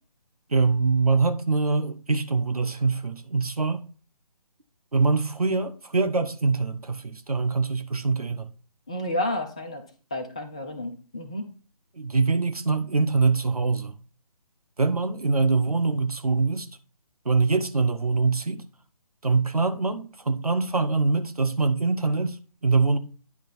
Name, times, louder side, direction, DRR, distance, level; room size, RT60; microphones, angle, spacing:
voice 1, 0.5-3.8 4.9-8.5 12.0-13.9 14.8-16.7 17.2-18.6 19.2-22.4 22.6-23.0, right 4 dB, 80° right, 1.1 m, -24 dB
voice 2, 8.9-9.8 10.1-11.5, left 1 dB, 10° left, 0.3 m, -31 dB
9.9 x 4.5 x 4.3 m
figure-of-eight pair, 145°, 19 cm